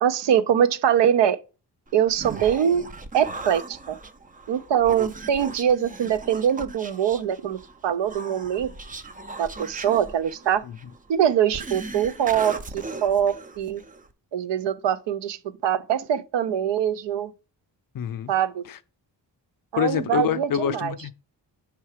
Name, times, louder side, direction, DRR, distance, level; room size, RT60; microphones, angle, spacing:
voice 1, 0.0-1.4 1.9-2.8 3.1-4.0 4.5-7.6 7.8-8.7 9.4-10.6 11.1-12.6 13.0-13.8 14.3-17.3 18.3-18.6 19.7-20.9, right 9 dB, 85° right, 0.6 m, -23 dB
Human voice, 1.9-14.1, right 3 dB, 20° right, 0.3 m, -38 dB
voice 2, 17.9-18.3 18.7-18.8 19.8-21.1, left 9 dB, 55° left, 0.5 m, -26 dB
5.6 x 3.4 x 4.8 m
wide cardioid pair, 165°, 42 cm